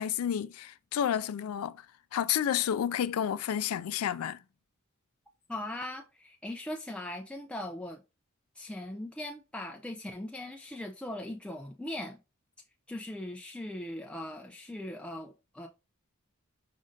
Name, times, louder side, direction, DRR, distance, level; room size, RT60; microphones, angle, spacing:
voice 1, 0.0-1.8 2.1-4.4, left 9 dB, 90° left, 0.3 m, -30 dB
voice 2, 5.5-8.0 8.6-12.2 12.9-15.7, left 1 dB, 5° left, 0.3 m, -39 dB
5.3 x 2.5 x 3.7 m
head